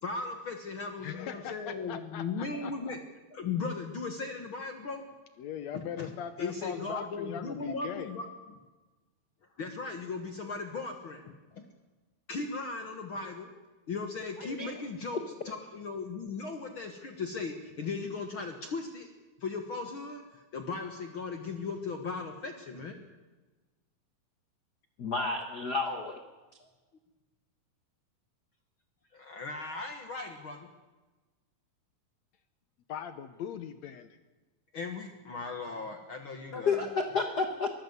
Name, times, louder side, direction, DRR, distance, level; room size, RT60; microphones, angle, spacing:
voice 1, 0.0-3.0 3.3-5.0 5.7-6.1 6.4-8.6 9.6-11.6 12.3-13.5 13.9-19.1 19.4-23.0 26.6-26.7 29.1-30.7 34.7-36.9, left 4 dB, 55° left, 5 dB, 1.5 m, -37 dB
voice 2, 1.0-3.0 5.4-8.1 32.9-34.2, left 8 dB, 75° left, 11 dB, 1.6 m, -40 dB
voice 3, 14.4-14.8 25.0-26.1 36.5-37.7, left 4 dB, 90° left, 6 dB, 0.8 m, -31 dB
23.0 x 15.0 x 8.1 m, 1.2 s
omnidirectional pair, 4.2 m